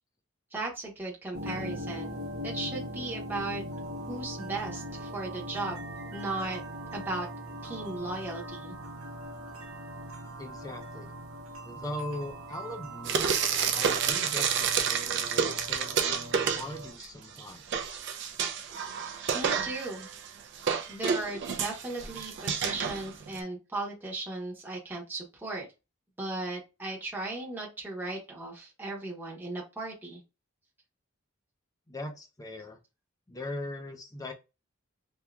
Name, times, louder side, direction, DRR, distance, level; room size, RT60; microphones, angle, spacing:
voice 1, 0.5-3.6 4.1-5.8 6.1-6.6 6.9-7.3 7.6-8.7 19.3-20.1 20.9-25.7 26.2-30.2, right 2 dB, 10° right, -3 dB, 0.8 m, -36 dB
sound 1, 1.3-16.9, equal, 80° right, 0.9 m, -40 dB
voice 2, 10.4-11.1 11.6-13.3 13.7-18.0 31.9-32.8 33.3-34.3, left 1 dB, 15° left, 4 dB, 0.5 m, -40 dB
Frying (food), 13.0-17.1 17.4-23.4, right 7 dB, 55° right, 0.4 m, -30 dB
3.4 x 2.8 x 2.3 m, 0.27 s
head